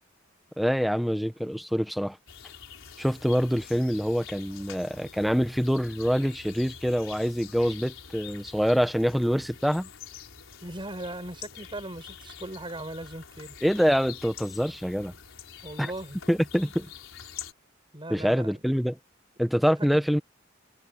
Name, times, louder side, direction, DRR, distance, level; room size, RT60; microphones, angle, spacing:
voice 1, 0.6-2.2 3.0-9.9 13.6-15.1 15.8-15.9 16.3-16.9 18.1-19.0 19.4-20.2, equal, ahead, 1.2 m, -25 dB
sound 1, 2.3-17.5, left 8 dB, 85° left, 4.3 m, -46 dB
voice 2, 10.6-13.6 14.9-15.0 15.6-16.2 17.9-18.5 19.8-20.0, right 1 dB, 25° right, 7.5 m, -39 dB
head